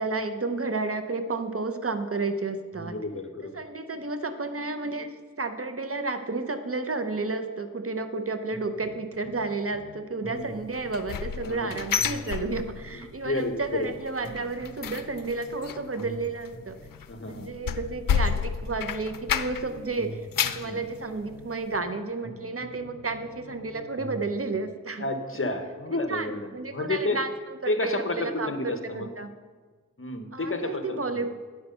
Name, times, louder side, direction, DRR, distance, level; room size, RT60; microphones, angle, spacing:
voice 1, 0.0-3.0 3.5-16.8 17.2-25.0 26.1-29.3 30.3-31.3, right 3 dB, 45° right, 8 dB, 0.7 m, -32 dB
voice 2, 2.8-3.6 10.2-10.5 11.4-11.7 13.2-13.9 17.1-17.5 20.6-20.8 25.0-27.2 27.7-29.1 30.0-31.2, left 2 dB, 40° left, 6 dB, 1.0 m, -31 dB
sound 1, 8.5-10.0 10.2-14.0 14.2-18.0 18.2-22.0 22.2-24.3, equal, ahead, 1.6 m, -46 dB
sound 2, 10.7-13.1 13.4-13.7 14.0-19.8 20.1-20.7 21.2-21.3 21.7-21.8, left 7 dB, 80° left, 0.5 m, -30 dB
9.3 x 6.1 x 6.6 m, 1.4 s
wide cardioid pair, 75°, 33 cm